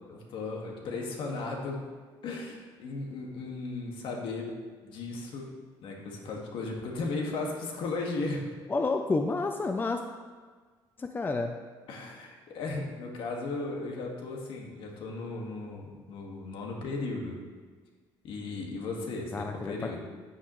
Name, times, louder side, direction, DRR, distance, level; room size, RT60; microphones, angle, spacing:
voice 1, 0.0-1.8 2.2-4.5 4.8-5.5 5.8-8.4 11.9-17.4 18.2-20.0, left 3 dB, 70° left, 0 dB, 1.9 m, -36 dB
voice 2, 8.7-10.0 11.0-11.6 19.3-20.0, left 3 dB, 20° left, 5 dB, 0.6 m, -30 dB
9.5 x 9.0 x 3.2 m, 1.5 s
cardioid pair, 100°, 9 cm